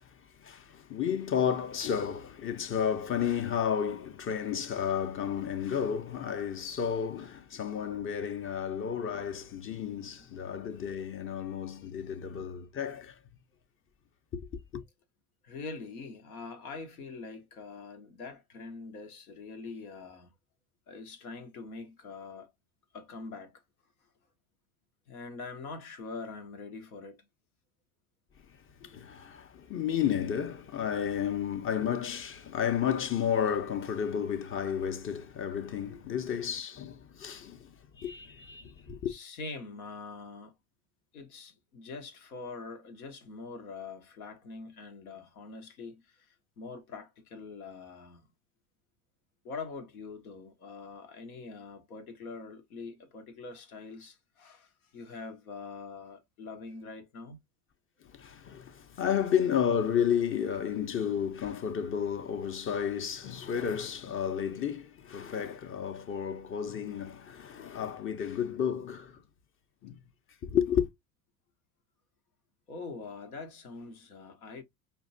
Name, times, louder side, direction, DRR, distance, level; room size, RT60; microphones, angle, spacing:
voice 1, 0.4-13.1 14.3-14.8 28.8-37.7 38.0-39.1 58.1-69.1 69.8-70.0 70.4-70.9, left 8 dB, 30° left, 0.6 m, -32 dB
voice 2, 15.4-20.3 20.9-22.5 22.9-23.6 25.1-27.2 28.8-28.9 35.9-36.0 39.1-40.5 41.1-48.3 49.4-57.4 72.7-74.6, left 4 dB, 90° left, 0.9 m, -44 dB
5.1 x 2.2 x 2.5 m
hypercardioid pair, 75°, 42 cm